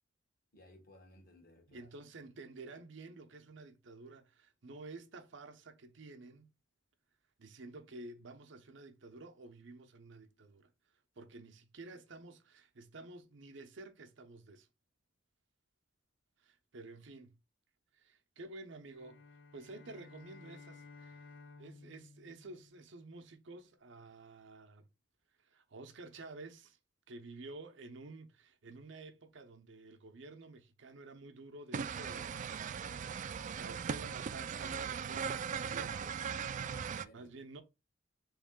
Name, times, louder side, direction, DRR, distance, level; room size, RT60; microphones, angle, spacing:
voice 1, 0.5-1.9 36.5-37.3, left 1 dB, 50° left, 1.4 m, -59 dB
voice 2, 1.7-6.5 7.4-10.7 11.2-14.7 16.4-17.4 17.9-19.2 19.5-24.9 25.4-26.8 27.1-33.1 33.6-36.3 37.1-37.6, right 2 dB, 70° right, 0.8 m, -51 dB
sound 1, 18.9-23.3, left 4 dB, 90° left, 0.6 m, -56 dB
sound 2, 31.7-37.1, right 6 dB, 40° right, 0.3 m, -39 dB
3.6 x 3.2 x 3.6 m
head